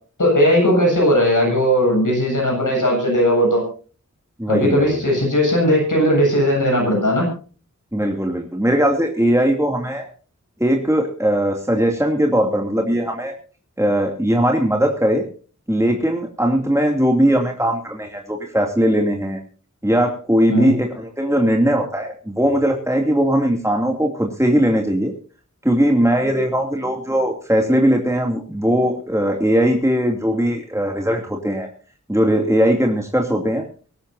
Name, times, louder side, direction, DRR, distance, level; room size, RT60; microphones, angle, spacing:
voice 1, 0.2-3.6 4.5-7.3 20.5-20.7, equal, 85° left, 0 dB, 8.0 m, -17 dB
voice 2, 4.4-5.0 7.9-10.1 10.6-13.3 13.8-15.3 15.7-19.4 19.8-25.1 25.6-31.7 32.1-33.6, equal, 10° right, 1 dB, 2.7 m, -19 dB
23.5 x 13.0 x 2.7 m, 0.38 s
wide cardioid pair, 40°, 31 cm